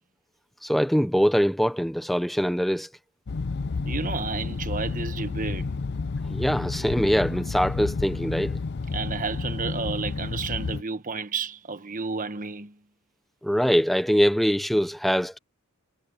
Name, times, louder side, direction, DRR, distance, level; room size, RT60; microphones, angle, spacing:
voice 1, 0.6-2.9 6.3-8.6 13.4-15.4, equal, ahead, 0.9 m, -23 dB
sound 1, 3.3-10.8, left 4 dB, 50° left, 0.5 m, -31 dB
voice 2, 3.8-5.7 8.9-12.7, right 4 dB, 35° right, 1.3 m, -31 dB
head